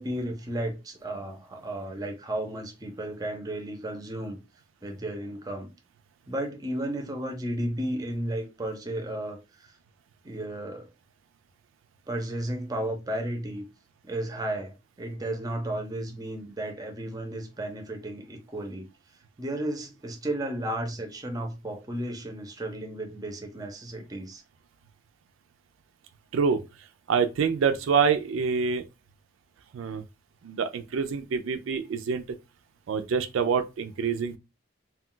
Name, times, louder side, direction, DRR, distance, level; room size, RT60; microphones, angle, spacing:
voice 1, 0.0-4.4 4.8-5.7 6.3-9.4 10.2-10.9 12.1-13.6 14.0-18.9 19.4-24.4, right 1 dB, 20° right, 0.5 m, -33 dB
voice 2, 27.1-28.8 29.7-30.0 30.4-32.2 32.9-34.4, right 6 dB, 85° right, 0.4 m, -26 dB
2.3 x 2.3 x 3.7 m
head